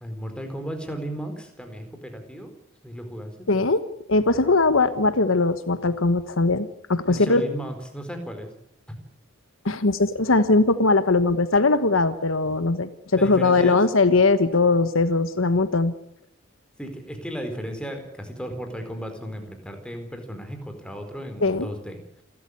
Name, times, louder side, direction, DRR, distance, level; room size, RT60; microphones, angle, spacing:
voice 1, 0.0-2.5 2.8-3.5 7.0-8.5 13.2-13.8 16.8-22.2, equal, 5° left, 5 dB, 4.4 m, -35 dB
voice 2, 3.5-3.8 4.1-7.4 9.6-12.9 13.2-15.9 21.4-21.7, left 3 dB, 70° left, 12 dB, 1.3 m, -20 dB
28.5 x 13.5 x 9.9 m, 0.74 s
head